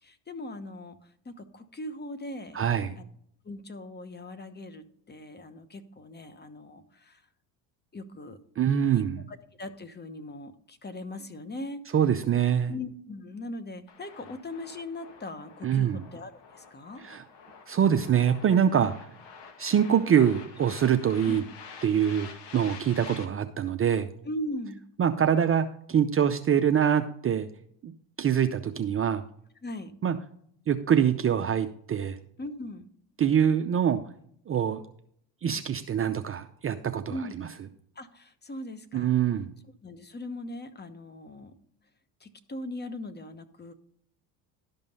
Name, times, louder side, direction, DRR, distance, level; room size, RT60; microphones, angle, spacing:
voice 1, 0.0-2.6 3.0-3.1 3.4-7.2 7.9-8.4 8.9-11.8 12.7-17.0 21.3-21.4 24.2-24.8 29.6-29.9 32.4-32.9 37.1-37.3 37.9-39.1 39.8-41.5 42.2-43.7, left 1 dB, 20° left, 10 dB, 1.1 m, -40 dB
voice 2, 2.5-3.0 8.6-9.2 11.9-12.7 15.6-16.0 17.0-17.2 17.7-19.1 19.6-21.4 21.8-24.1 25.0-27.5 27.8-27.9 28.2-29.2 30.0-30.2 30.7-32.2 33.2-34.0 34.5-34.8 35.4-37.5 38.9-39.5, right 8 dB, 25° right, 8 dB, 0.6 m, -24 dB
sound 1, 13.9-23.2, left 6 dB, 55° left, 1.8 m, -48 dB
12.0 x 5.4 x 5.3 m, 0.65 s
supercardioid pair, 80°, 50 cm